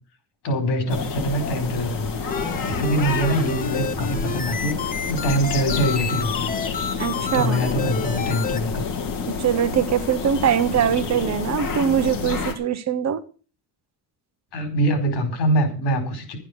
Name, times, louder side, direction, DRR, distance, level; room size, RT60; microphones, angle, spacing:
voice 1, 0.4-2.2 2.6-6.5 7.3-8.8 14.5-16.4, right 1 dB, 85° left, 4.8 m, -24 dB
sound 1, 0.9-12.5, left 5 dB, 55° left, 2.5 m, -29 dB
sound 2, 2.3-8.6, left 6 dB, 20° left, 0.8 m, -30 dB
voice 2, 7.0-7.7 9.4-13.2, right 9 dB, 40° right, 1.0 m, -22 dB
12.0 x 9.9 x 6.4 m
cardioid pair, 175°, 40 cm